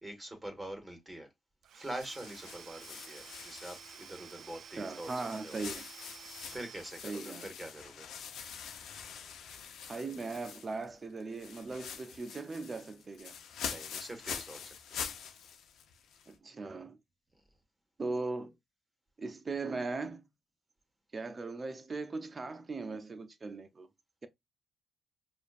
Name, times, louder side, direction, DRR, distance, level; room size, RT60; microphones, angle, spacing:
voice 1, 0.0-1.3 1.7-5.6 6.5-8.1 13.6-15.0, right 1 dB, 15° right, 1.6 m, -44 dB
Domestic sounds home sounds / Tools, 1.6-7.7, right 7 dB, 70° right, 0.4 m, -52 dB
sound 1, 2.0-4.6 5.0-10.9 11.2-16.4, left 7 dB, 80° left, 0.8 m, -45 dB
voice 2, 4.8-5.9 7.0-7.5 9.9-13.3 16.3-17.0 18.0-18.5 19.2-20.3 21.1-23.9, right 3 dB, 30° right, 0.7 m, -39 dB
5.1 x 2.5 x 2.5 m
cardioid pair, 90°, 0 cm